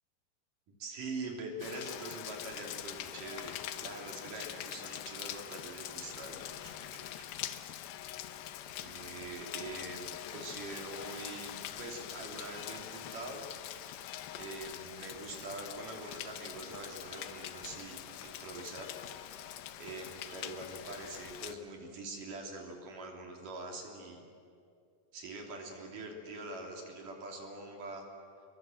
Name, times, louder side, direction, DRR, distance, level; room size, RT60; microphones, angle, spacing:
voice 1, 0.7-7.3 8.8-11.5 11.8-13.4 14.4-18.9 19.8-24.2 25.1-28.1, right 2 dB, 65° right, 2 dB, 4.5 m, -44 dB
Rain, 1.6-21.6, left 12 dB, 85° left, 2.8 m, -44 dB
sound 1, 14.7-20.5, right 3 dB, 45° right, 3.7 m, -61 dB
29.0 x 22.5 x 7.8 m, 2.4 s
omnidirectional pair, 4.1 m